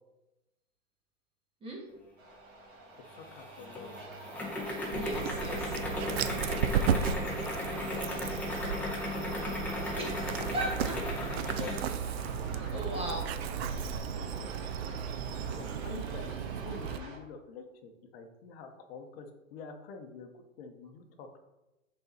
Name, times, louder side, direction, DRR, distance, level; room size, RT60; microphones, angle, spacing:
sound 1, 2.2-17.2, right 2 dB, 65° right, 2.0 m, -47 dB
sound 2, 3.1-11.9, left 1 dB, 5° left, 0.9 m, -36 dB
voice 1, 3.2-3.9 8.0-8.3 8.7-9.6 11.2-11.8 12.5-13.0 14.3-14.5 15.4-20.3 20.6-21.4, left 4 dB, 45° left, 6 dB, 1.0 m, -47 dB
voice 2, 4.9-5.8 9.9-11.0 11.5-11.8 12.7-13.3, right 1 dB, 15° right, -2 dB, 1.5 m, -37 dB
Dog, 4.9-17.0, right 7 dB, 50° right, 0.5 m, -35 dB
6.8 x 4.2 x 4.0 m, 1.0 s
hypercardioid pair, 140°, 42 cm